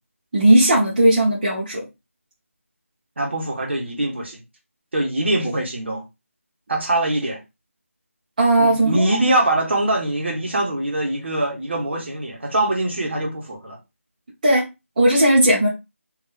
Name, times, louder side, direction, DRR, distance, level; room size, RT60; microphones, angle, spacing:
voice 1, 0.3-1.8 8.4-9.2 14.4-14.7 15.0-15.7, right 1 dB, 30° right, 1.0 m, -16 dB
voice 2, 3.2-4.4 4.9-6.0 6.7-7.4 8.6-13.8, right 1 dB, 50° right, 1.2 m, -23 dB
3.6 x 2.7 x 2.6 m
figure-of-eight pair, 165°, 8 cm